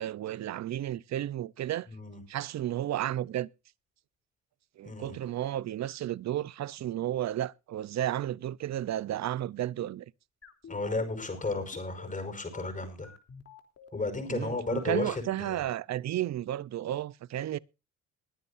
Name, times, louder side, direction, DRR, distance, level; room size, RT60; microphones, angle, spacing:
voice 1, 0.0-1.9 2.3-3.5 4.8-10.0 14.3-17.6, right 12 dB, 60° right, 0.8 m, -33 dB
voice 2, 1.9-2.2 4.8-5.2 10.7-13.1 13.9-15.6, left 3 dB, 25° left, 5.4 m, -34 dB
sound 1, 10.4-15.6, left 6 dB, 50° left, 3.3 m, -49 dB
22.0 x 10.0 x 2.7 m
cardioid pair, 90°, 30 cm